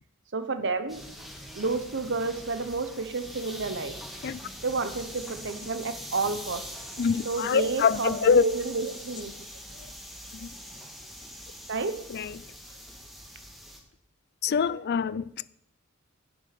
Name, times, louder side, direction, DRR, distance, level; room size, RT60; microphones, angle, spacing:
voice 1, 0.3-1.0 1.5-4.0 4.6-6.7 7.2-9.3 11.7-12.0, right 3 dB, 60° right, 1.0 m, -30 dB
sound 1, 0.9-13.8, equal, ahead, 1.6 m, -43 dB
voice 2, 7.0-8.4 10.3-10.5 12.1-12.4 14.4-15.5, left 6 dB, 50° left, 0.4 m, -25 dB
9.7 x 7.5 x 6.8 m
head